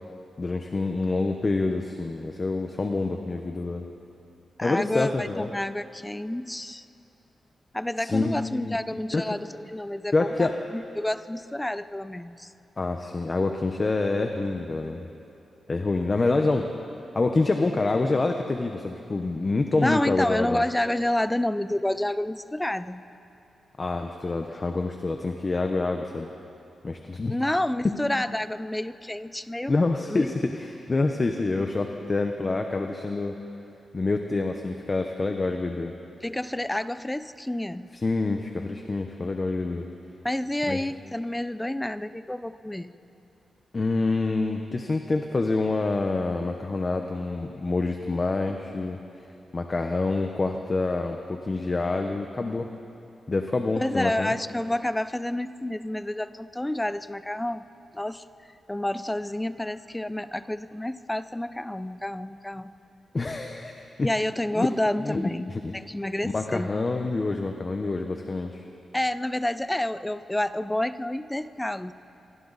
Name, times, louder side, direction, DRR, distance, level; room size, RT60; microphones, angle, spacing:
voice 1, 0.4-3.8 4.6-5.5 8.0-8.8 9.1-9.2 10.1-10.6 12.8-15.0 15.7-16.7 17.1-20.6 23.8-26.3 26.8-27.3 29.7-33.4 33.9-35.9 38.0-39.9 40.7-40.8 43.7-49.0 49.5-52.7 53.3-54.3 63.1-64.1 64.6-64.7 65.0-65.2 65.5-65.8 66.2-68.6, left 3 dB, 25° left, 4 dB, 0.9 m, -27 dB
voice 2, 4.6-6.9 7.7-12.5 19.8-23.0 27.3-29.7 30.1-30.3 36.2-37.9 40.2-42.9 53.8-57.7 57.9-58.2 58.7-62.7 64.0-66.7 68.9-71.9, left 1 dB, 10° left, 13 dB, 0.5 m, -29 dB
27.5 x 23.5 x 4.1 m, 2.8 s
wide cardioid pair, 155°, 0 cm